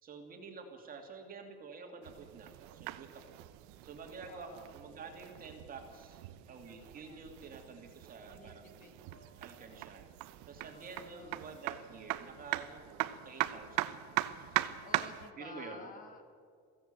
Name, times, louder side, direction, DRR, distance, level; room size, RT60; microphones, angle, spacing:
voice 1, 0.0-3.4 3.8-6.2 6.5-8.9 9.4-10.0 10.5-14.6 15.4-15.9, right 4 dB, 30° right, 3 dB, 2.9 m, -49 dB
sound 1, 2.0-15.3, right 16 dB, 75° right, 1.0 m, -40 dB
voice 2, 4.3-4.7 8.3-9.5 10.6-11.8 14.8-16.2, left 3 dB, 30° left, 6 dB, 1.8 m, -53 dB
21.5 x 16.0 x 8.7 m, 2.1 s
cardioid pair, 165°, 29 cm